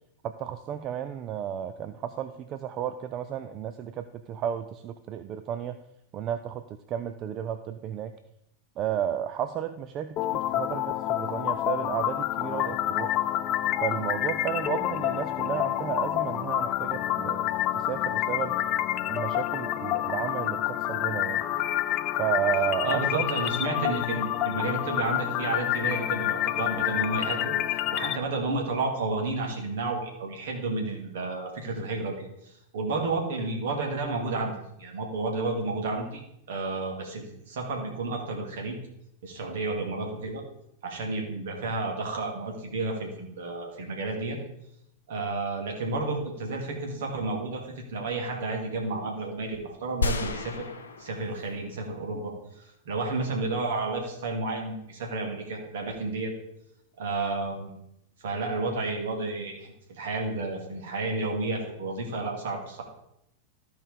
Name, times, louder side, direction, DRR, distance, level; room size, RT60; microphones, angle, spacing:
voice 1, 0.2-5.8 6.1-8.1 8.8-13.2 13.8-17.5 17.7-18.6 19.1-21.4 22.2-23.3, right 10 dB, 35° right, 10 dB, 0.5 m, -33 dB
sound 1, 10.2-28.2, left 13 dB, 35° left, 0.4 m, -28 dB
voice 2, 22.8-27.5 27.9-34.5 34.8-36.2 36.5-38.8 39.2-40.4 40.8-44.4 45.1-50.7 51.0-56.3 57.0-57.7 58.2-62.8, right 3 dB, 55° right, 1 dB, 2.3 m, -31 dB
sound 2, 50.0-51.9 52.3-52.4, left 3 dB, 70° left, 0.8 m, -32 dB
13.5 x 4.8 x 5.1 m, 0.80 s
figure-of-eight pair, 90°, 0 cm